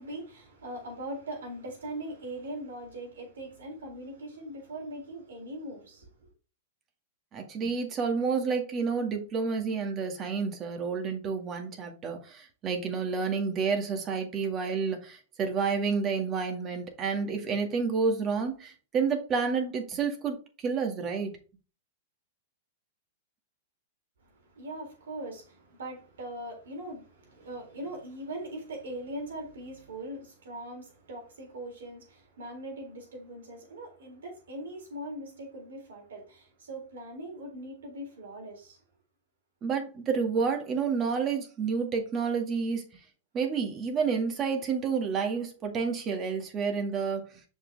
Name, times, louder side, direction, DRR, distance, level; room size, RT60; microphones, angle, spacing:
voice 1, 0.0-6.3 24.4-38.8, right 1 dB, 75° right, 3.7 m, -41 dB
voice 2, 7.3-21.3 39.6-42.8 43.3-47.3, right 5 dB, 30° right, 2.1 m, -29 dB
6.4 x 5.5 x 3.5 m
hypercardioid pair, 105°, 0 cm